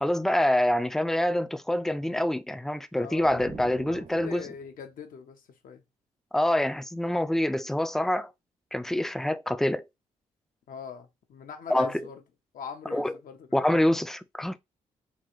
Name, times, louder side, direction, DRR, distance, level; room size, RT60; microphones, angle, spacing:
voice 1, 0.0-4.4 6.3-8.3 8.7-9.8 11.7-12.0 12.9-13.1 13.5-14.6, left 1 dB, 5° left, 0.4 m, -26 dB
voice 2, 3.0-3.4 3.9-5.8 10.7-12.2 12.5-13.8, left 7 dB, 70° left, 0.8 m, -42 dB
sound 1, 3.2-4.8, right 8 dB, 60° right, 0.5 m, -46 dB
3.8 x 2.4 x 3.1 m
supercardioid pair, 55°, 15 cm